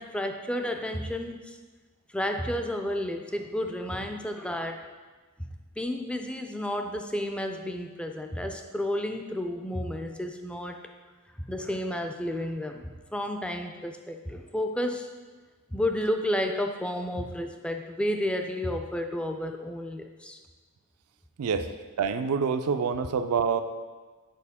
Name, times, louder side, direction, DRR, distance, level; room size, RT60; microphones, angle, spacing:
voice 1, 0.0-1.6 2.1-4.9 5.4-5.5 5.8-10.9 11.4-15.1 15.7-20.4, left 1 dB, 5° left, 5 dB, 0.3 m, -31 dB
voice 2, 22.0-23.6, right 6 dB, 75° right, 9 dB, 0.4 m, -26 dB
6.8 x 4.3 x 3.6 m, 1.4 s
head